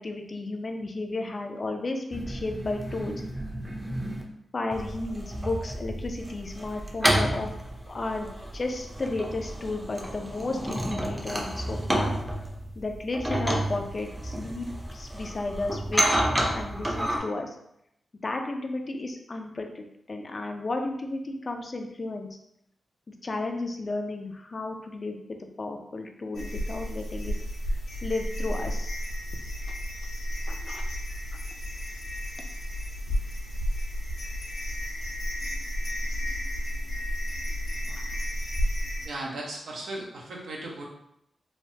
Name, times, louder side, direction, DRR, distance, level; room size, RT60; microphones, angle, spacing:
voice 1, 0.0-3.2 4.5-7.5 7.9-12.1 12.8-17.6 18.2-22.3 23.2-25.2 25.6-27.3 27.6-29.0 30.5-30.8 37.9-38.1, left 2 dB, 45° left, 4 dB, 0.4 m, -33 dB
sound 1, 2.1-4.2 4.7-17.2, right 1 dB, 15° right, 0.5 m, -30 dB
sound 2, 26.3-39.1, equal, 80° left, 0.7 m, -32 dB
voice 2, 39.0-40.8, right 2 dB, 85° right, -2 dB, 0.6 m, -36 dB
3.1 x 2.1 x 2.7 m, 0.78 s
cardioid pair, 70°, 0 cm